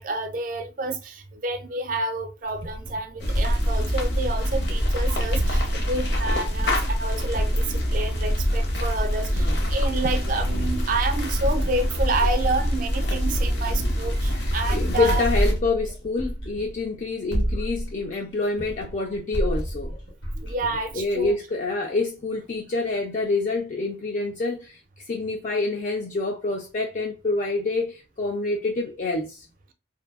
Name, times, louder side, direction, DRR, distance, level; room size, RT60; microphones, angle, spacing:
voice 1, 0.0-15.2 20.4-21.3, right 2 dB, 45° right, 0.4 m, -29 dB
sound 1, 2.5-4.9 5.3-8.9 9.3-12.9 13.3-17.0 17.3-21.4, equal, 80° left, 1.6 m, -30 dB
sound 2, 3.2-15.5, equal, 65° left, 0.7 m, -25 dB
voice 2, 9.3-9.7 14.3-19.9 20.9-24.8 25.1-29.5, left 3 dB, 40° left, 0.3 m, -27 dB
2.6 x 2.5 x 2.3 m
head